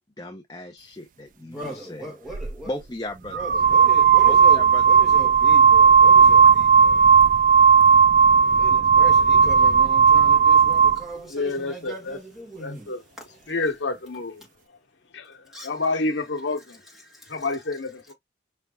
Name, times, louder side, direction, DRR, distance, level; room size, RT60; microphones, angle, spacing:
voice 1, 0.2-2.1 2.7-3.4 4.3-5.2, left 1 dB, 20° left, 0.6 m, -36 dB
voice 2, 1.3-2.8 3.3-7.1 8.6-13.5 15.5-15.8 17.0-17.5, right 1 dB, ahead, 1.7 m, -39 dB
sound 1, 2.3-2.5 3.3-11.0, right 6 dB, 45° right, 0.3 m, -15 dB
voice 3, 11.3-12.2 12.6-13.0 13.5-14.4 15.1-16.8 17.3-18.1, left 3 dB, 80° left, 1.0 m, -28 dB
5.5 x 3.3 x 2.3 m
head